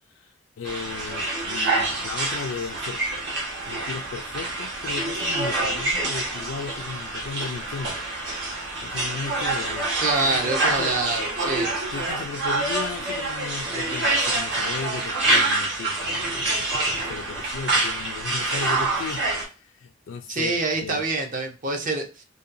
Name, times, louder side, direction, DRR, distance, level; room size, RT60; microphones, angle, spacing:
voice 1, 0.1-3.0 3.6-8.0 8.8-11.0 11.9-21.0, left 5 dB, 70° left, 4 dB, 0.3 m, -36 dB
sound 1, 0.6-19.4, right 2 dB, 65° right, 1.0 m, -26 dB
voice 2, 10.0-11.7 20.3-22.2, right 3 dB, 40° right, 4 dB, 0.5 m, -26 dB
2.7 x 2.2 x 2.5 m, 0.33 s
head